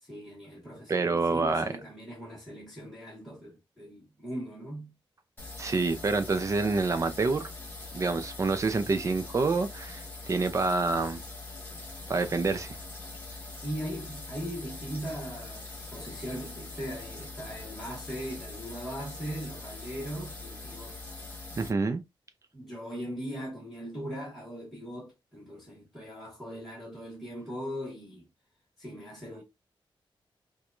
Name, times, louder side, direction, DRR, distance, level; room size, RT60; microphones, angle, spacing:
voice 1, 0.0-4.9 13.6-21.0 22.5-28.3 28.8-29.4, equal, ahead, 1.2 m, -39 dB
voice 2, 0.9-1.7 5.6-7.5 7.9-11.2 12.1-12.8 21.6-22.0, right 3 dB, 35° right, 0.5 m, -27 dB
sound 1, 5.4-21.7, left 3 dB, 20° left, 1.4 m, -43 dB
4.5 x 2.3 x 2.5 m
wide cardioid pair, 150°, 9 cm